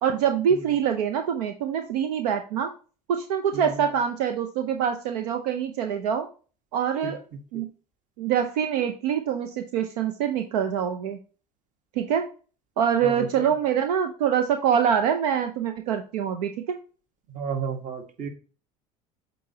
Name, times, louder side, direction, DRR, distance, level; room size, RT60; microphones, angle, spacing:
voice 1, 0.0-2.7 3.1-6.3 6.7-7.2 7.5-7.7 8.2-11.2 12.0-12.3 12.8-16.8, right 8 dB, 70° right, 7 dB, 0.7 m, -25 dB
voice 2, 17.3-18.3, right 6 dB, 35° right, 6 dB, 1.4 m, -31 dB
8.3 x 4.1 x 2.8 m, 0.36 s
hypercardioid pair, 70°, 21 cm